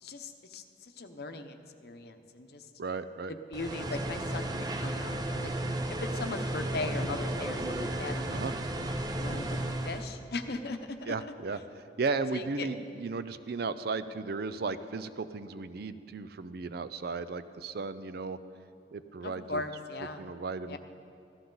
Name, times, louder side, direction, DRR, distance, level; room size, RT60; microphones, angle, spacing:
voice 1, 0.0-2.7 3.3-5.5 6.0-8.4 9.1-11.1 12.3-12.7 19.2-20.3 20.7-20.8, left 3 dB, 60° left, 7 dB, 0.8 m, -39 dB
voice 2, 2.8-3.3 8.3-8.5 11.1-18.4 18.9-19.6 20.2-20.8, right 4 dB, 60° right, 12 dB, 0.5 m, -35 dB
sound 1, 3.5-10.0, right 1 dB, 25° right, 0.7 m, -33 dB
14.5 x 13.5 x 3.9 m, 2.5 s
head